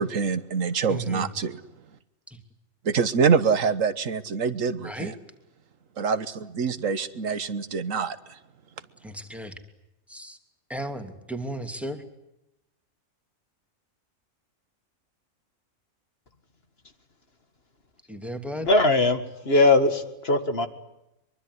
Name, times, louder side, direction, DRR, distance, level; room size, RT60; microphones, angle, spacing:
voice 1, 0.0-1.6 2.8-5.1 6.0-8.4, right 5 dB, 80° right, 13 dB, 1.6 m, -25 dB
voice 2, 0.9-1.3 2.3-2.4 4.8-5.1 9.0-9.6 10.1-10.4 10.7-12.0 18.1-18.7, equal, ahead, 6 dB, 2.8 m, -35 dB
voice 3, 18.6-20.7, left 2 dB, 50° left, 8 dB, 2.2 m, -20 dB
23.5 x 23.5 x 9.8 m, 0.88 s
omnidirectional pair, 1.3 m